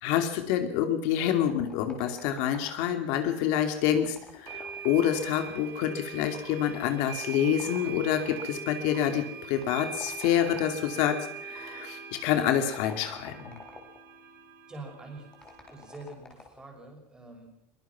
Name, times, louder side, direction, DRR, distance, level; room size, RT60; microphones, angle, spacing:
voice 1, 0.0-13.6, left 10 dB, 55° left, 7 dB, 2.7 m, -27 dB
sound 1, 1.5-3.1 3.9-5.8 6.7-8.6 9.6-10.9 12.5-14.1 15.3-16.7, left 3 dB, 10° left, 4.1 m, -49 dB
sound 2, 3.5-3.6 4.5-16.0, right 6 dB, 55° right, 5.8 m, -42 dB
voice 2, 14.7-15.4 15.7-17.5, right 2 dB, 10° right, 3 dB, 5.9 m, -45 dB
23.0 x 21.0 x 6.1 m, 0.76 s
supercardioid pair, 160°, 7 cm